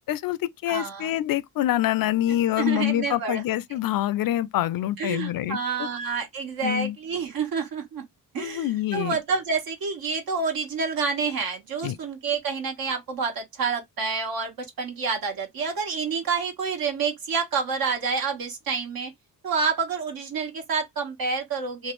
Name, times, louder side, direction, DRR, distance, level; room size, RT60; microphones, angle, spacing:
voice 1, 0.1-5.6 6.6-7.0 8.4-9.2 11.8-12.0, left 13 dB, 65° left, 0.5 m, -26 dB
voice 2, 0.7-1.1 2.6-3.4 5.0-8.0 8.3-19.1 19.4-21.9, right 5 dB, 70° right, 1.3 m, -28 dB
3.1 x 2.4 x 3.0 m
cardioid pair, 80°, 37 cm